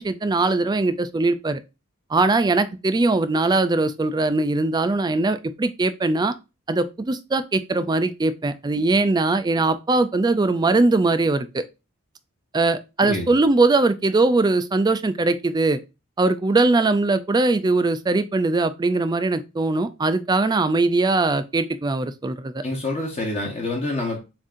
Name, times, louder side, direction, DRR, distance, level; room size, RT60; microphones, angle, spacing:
voice 1, 0.0-1.6 2.1-6.3 6.7-11.6 12.5-15.8 16.2-22.6, right 3 dB, 20° right, 0.3 m, -21 dB
voice 2, 13.0-13.3 22.6-24.2, left 2 dB, 30° left, 0.9 m, -27 dB
7.2 x 2.7 x 2.5 m
head